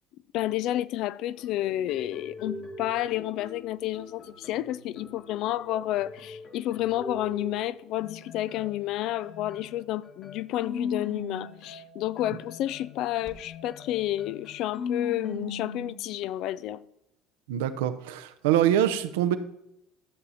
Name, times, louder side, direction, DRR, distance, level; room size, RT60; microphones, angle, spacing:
voice 1, 0.3-16.8, left 14 dB, 65° left, 0.4 m, -30 dB
sound 1, 1.4-7.6 8.0-16.0, left 4 dB, 50° left, 1.6 m, -40 dB
voice 2, 17.5-19.4, right 11 dB, 85° right, 0.7 m, -24 dB
12.5 x 6.9 x 4.1 m
hypercardioid pair, 75°, 0 cm